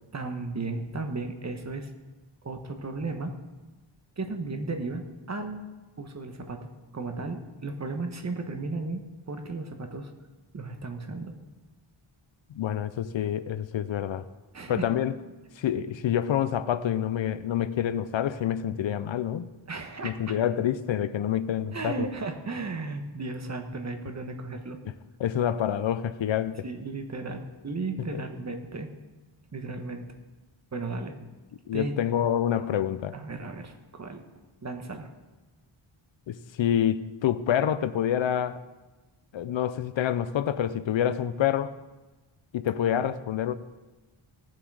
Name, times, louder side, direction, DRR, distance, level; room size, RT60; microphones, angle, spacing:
voice 1, 0.1-1.9 2.4-3.3 4.2-5.7 6.0-10.1 10.5-11.3 14.5-14.9 19.7-20.3 21.7-24.8 26.6-28.9 29.5-30.2 30.7-31.2 31.7-31.9 33.1-34.2 34.6-35.1 43.0-43.1, right 3 dB, 35° right, 1.1 m, -35 dB
voice 2, 12.5-14.3 14.7-15.1 15.6-19.5 20.0-22.1 25.2-26.6 31.7-33.2 36.3-38.6 39.3-41.7 42.5-43.5, left 10 dB, 65° left, 0.6 m, -27 dB
18.0 x 7.4 x 4.8 m
wide cardioid pair, 170°, 50 cm